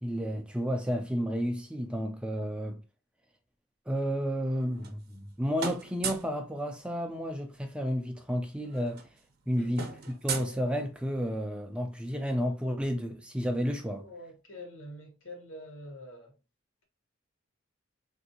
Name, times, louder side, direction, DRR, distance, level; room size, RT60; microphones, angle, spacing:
voice 1, 0.0-2.8 3.9-9.0 9.5-9.9 10.2-14.0, equal, 5° right, 0.3 m, -31 dB
sound 1, 4.5-5.3 5.6-6.4 7.8-7.9 8.1-8.3 8.6-11.2, right 5 dB, 50° right, 0.6 m, -38 dB
voice 2, 14.0-16.4, left 1 dB, 75° left, 1.2 m, -46 dB
3.5 x 2.6 x 2.7 m
head